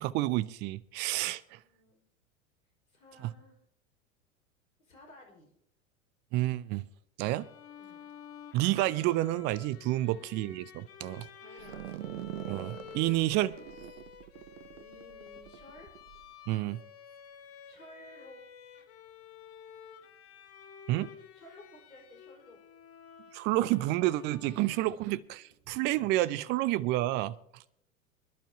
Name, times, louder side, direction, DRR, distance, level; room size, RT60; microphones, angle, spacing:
voice 1, 0.0-1.6 3.2-3.3 6.3-6.9 7.2-7.5 8.5-11.3 12.5-13.6 16.5-16.8 20.9-21.1 23.3-27.6, right 16 dB, 25° right, 0.4 m, -30 dB
voice 2, 1.6-2.0 2.9-3.6 4.8-5.5 7.8-8.1 10.0-10.3 11.4-12.2 14.7-15.9 17.6-18.4 21.3-22.6, left 1 dB, 75° left, 4.6 m, -55 dB
Bowed string instrument, 7.3-25.1, left 8 dB, 35° left, 1.5 m, -51 dB
sound 1, 11.6-16.2, right 13 dB, 60° right, 0.8 m, -44 dB
25.5 x 11.5 x 2.8 m
figure-of-eight pair, 85°, 42 cm